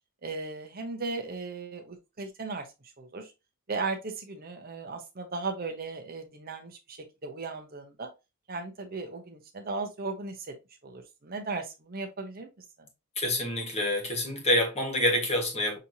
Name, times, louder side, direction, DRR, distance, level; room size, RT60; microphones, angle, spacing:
voice 1, 0.2-2.7 3.0-3.3 3.7-8.1 8.5-10.5 10.8-12.5, right 3 dB, 40° right, 0.8 m, -36 dB
voice 2, 13.1-15.8, left 1 dB, 30° left, 1.4 m, -27 dB
6.2 x 2.8 x 2.7 m
head